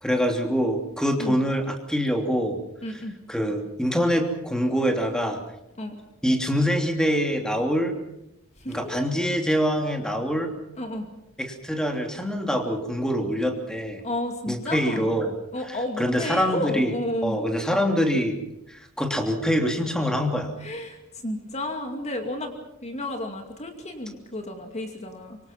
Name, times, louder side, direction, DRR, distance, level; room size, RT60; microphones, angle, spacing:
voice 1, 0.0-2.6 3.3-5.4 6.2-7.9 8.7-10.5 11.4-14.0 14.5-15.3 16.0-16.9 17.2-18.4 18.7-20.5, equal, 5° left, 3 dB, 3.0 m, -24 dB
voice 2, 2.8-3.2 5.8-6.0 8.6-9.0 10.8-11.1 14.0-15.1 15.5-17.4 20.6-22.5 22.8-25.4, left 1 dB, 30° left, 4 dB, 2.4 m, -32 dB
25.5 x 24.5 x 5.9 m, 0.84 s
head